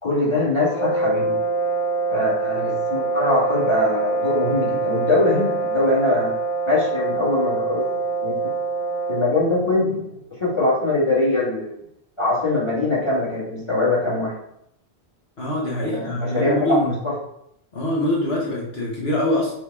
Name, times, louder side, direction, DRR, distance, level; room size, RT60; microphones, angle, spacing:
voice 1, 0.0-1.4 2.1-6.3 6.7-7.8 8.2-8.4 9.1-10.0 10.4-11.8 12.2-14.3 15.8-17.1, left 2 dB, 25° left, -6 dB, 2.7 m, -22 dB
sound 1, 0.6-9.5, right 3 dB, 50° left, 0.4 m, -24 dB
voice 2, 15.4-17.0 17.7-19.5, left 1 dB, 70° left, -4 dB, 1.6 m, -24 dB
6.1 x 4.1 x 4.9 m, 0.75 s
omnidirectional pair, 1.1 m